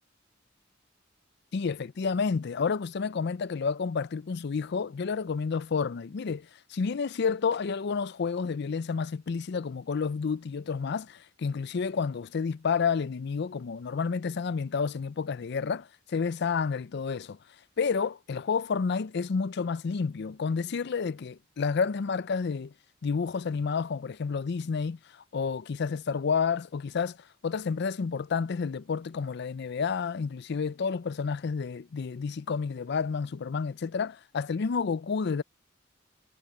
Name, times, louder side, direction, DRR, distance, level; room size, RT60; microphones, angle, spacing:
voice 1, 1.5-17.4 17.8-22.7 23.0-35.4, left 5 dB, 55° left, 0.4 m, -30 dB
head